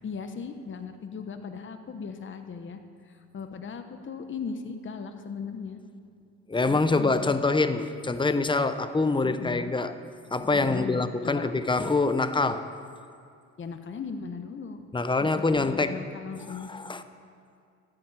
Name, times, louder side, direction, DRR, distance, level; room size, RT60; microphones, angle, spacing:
voice 1, 0.0-2.8 3.1-5.8 6.7-7.2 9.2-9.7 10.6-11.5 13.6-14.8 15.2-16.7, left 5 dB, 40° left, 7 dB, 1.0 m, -38 dB
voice 2, 6.5-9.9 10.3-12.7 14.9-16.0 16.5-17.0, left 3 dB, 15° left, 11 dB, 0.8 m, -25 dB
14.0 x 7.8 x 9.1 m, 2.3 s
cardioid pair, 90°, 30 cm